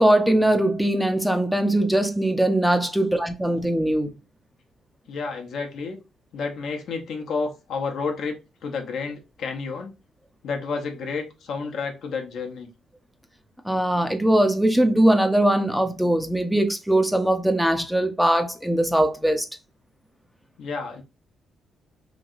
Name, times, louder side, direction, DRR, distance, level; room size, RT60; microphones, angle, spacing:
voice 1, 0.0-4.1 13.6-19.5, right 1 dB, ahead, 0.5 m, -21 dB
voice 2, 5.1-6.0 6.3-9.9 10.4-12.7 20.6-21.0, left 4 dB, 70° left, 0.7 m, -30 dB
3.0 x 2.7 x 2.4 m
cardioid pair, 90°, 0 cm